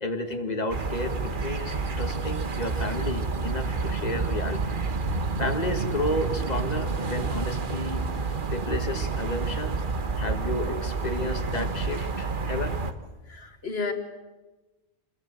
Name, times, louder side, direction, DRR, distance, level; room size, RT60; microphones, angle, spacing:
voice 1, 0.0-4.7 5.4-8.0 8.5-9.8 10.2-12.8, left 2 dB, 40° left, 2.0 m, -32 dB
sound 1, 0.7-12.9, right 4 dB, 50° right, 1.4 m, -29 dB
voice 2, 13.3-13.9, left 4 dB, 70° left, 1.8 m, -31 dB
27.0 x 21.0 x 7.9 m
omnidirectional pair, 1.1 m